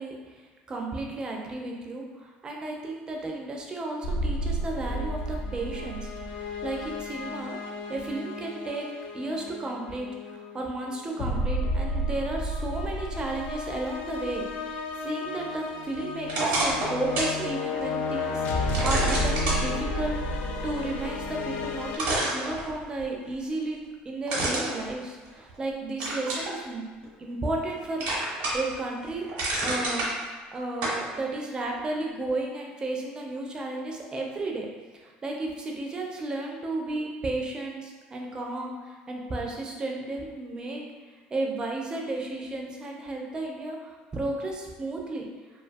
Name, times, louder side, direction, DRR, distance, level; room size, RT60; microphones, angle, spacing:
voice 1, 0.0-7.6 7.9-8.9 9.1-23.8 24.0-26.8 27.2-28.1 28.5-29.3 29.6-30.1 30.5-34.7 34.9-40.8 41.3-45.3, right 2 dB, 25° right, 0 dB, 0.4 m, -33 dB
sound 1, 4.0-22.0, left 1 dB, 60° left, 0.3 m, -31 dB
sound 2, 16.3-17.4 17.8-17.9 18.7-19.6 21.4-21.5 21.9-23.0 24.3-25.6 26.0-26.5 27.0-27.7 28.0-28.7 29.1-30.1 30.8-31.0, right 2 dB, 80° right, 0.9 m, -28 dB
2.5 x 2.3 x 2.5 m, 1.4 s
cardioid pair, 120°, 4 cm